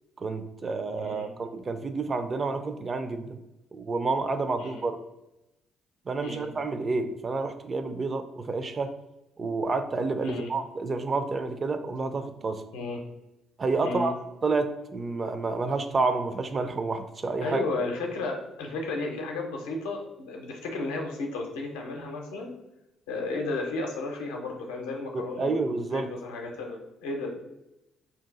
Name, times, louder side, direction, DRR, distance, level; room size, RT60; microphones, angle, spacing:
voice 1, 0.2-3.4 3.7-5.0 6.1-8.9 9.4-12.6 13.6-14.1 14.4-17.6 25.1-26.1, right 3 dB, 40° right, 9 dB, 0.4 m, -29 dB
voice 2, 1.0-1.3 4.6-4.8 6.2-6.5 10.2-10.5 12.7-13.0 13.8-14.1 17.4-22.5 23.1-27.3, left 2 dB, 75° left, 1 dB, 0.6 m, -33 dB
2.8 x 2.5 x 3.7 m, 0.94 s
figure-of-eight pair, 45°, 0 cm